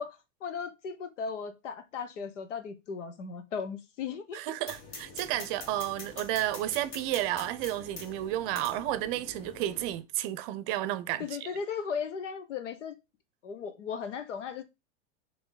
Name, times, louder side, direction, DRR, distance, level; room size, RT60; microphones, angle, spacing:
voice 1, 0.0-4.4 11.2-12.9 13.4-14.6, left 6 dB, 80° left, 1.1 m, -36 dB
voice 2, 4.3-11.5, right 14 dB, 50° right, 0.6 m, -32 dB
sound 1, 4.6-10.0, left 3 dB, 55° left, 2.2 m, -45 dB
4.0 x 3.1 x 3.9 m
hypercardioid pair, 115°, 36 cm